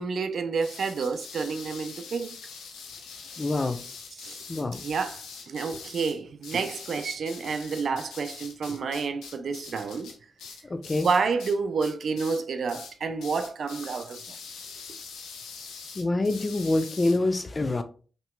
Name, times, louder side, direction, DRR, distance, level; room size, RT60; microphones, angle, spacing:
voice 1, 0.0-2.3 4.2-4.4 4.8-10.1 10.9-14.4, right 5 dB, 70° right, 0.4 m, -29 dB
sound 1, 0.6-11.5 11.8-12.4 12.7-12.9 13.2-17.2, left 5 dB, 90° left, 0.8 m, -43 dB
voice 2, 3.4-3.8 4.5-4.8 10.7-11.1 16.0-17.8, left 2 dB, 40° left, 0.6 m, -26 dB
5.6 x 3.0 x 2.2 m
supercardioid pair, 45°, 0 cm